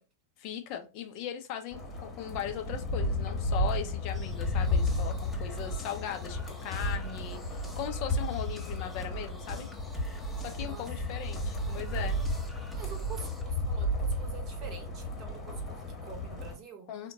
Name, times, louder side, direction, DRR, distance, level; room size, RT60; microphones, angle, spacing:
voice 1, 0.4-9.7 10.4-12.2 16.9-17.1, left 9 dB, 45° left, 0.5 m, -38 dB
sound 1, 1.7-16.5, left 1 dB, 20° left, 1.0 m, -33 dB
sound 2, 4.1-13.4, right 4 dB, ahead, 0.7 m, -44 dB
voice 2, 5.5-5.9 10.6-10.9 11.1-11.2 11.5-12.3 12.7-16.9, right 6 dB, 35° right, 0.8 m, -48 dB
3.6 x 2.1 x 2.7 m
figure-of-eight pair, 90°, 0 cm